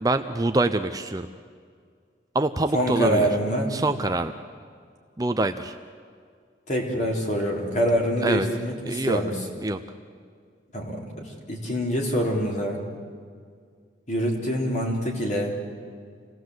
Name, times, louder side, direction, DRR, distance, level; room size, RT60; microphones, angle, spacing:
voice 1, 0.0-1.3 2.3-3.3 3.7-4.3 5.2-5.8 8.2-8.5 8.9-9.2 9.6-9.8, right 2 dB, 20° right, 8 dB, 0.6 m, -25 dB
voice 2, 2.7-3.7 6.7-9.3 10.7-11.0 11.5-12.8 14.1-15.6, equal, 40° left, 0 dB, 3.7 m, -25 dB
27.0 x 18.5 x 7.9 m, 2.1 s
head